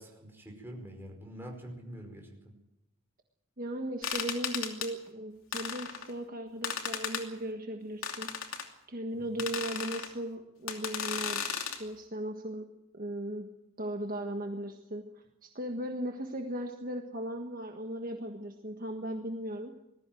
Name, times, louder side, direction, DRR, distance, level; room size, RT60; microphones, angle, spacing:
voice 1, 0.0-2.5 9.1-9.4, equal, 10° right, 1 dB, 5.0 m, -46 dB
voice 2, 3.6-8.3 8.9-12.7 12.9-13.5 13.8-19.7, right 1 dB, 40° right, 4 dB, 1.5 m, -37 dB
sound 1, 4.0-4.9 5.5-6.1 6.6-7.3 8.0-8.7 9.4-10.1 10.7-11.8, left 7 dB, 80° left, 2.8 m, -35 dB
20.5 x 14.5 x 9.3 m, 0.90 s
head